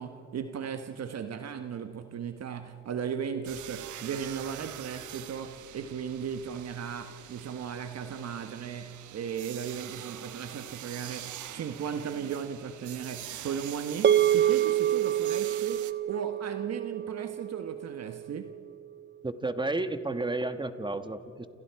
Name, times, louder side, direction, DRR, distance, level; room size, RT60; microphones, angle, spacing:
voice 1, 0.0-18.5, right 7 dB, 60° right, 1.2 m, -36 dB
sound 1, 3.4-15.9, right 12 dB, 75° right, 1.1 m, -44 dB
sound 2, 14.0-18.5, right 11 dB, 40° right, 0.5 m, -27 dB
voice 2, 19.2-21.5, right 2 dB, 15° right, 1.4 m, -32 dB
29.5 x 28.0 x 4.7 m
cardioid pair, 90°, 30 cm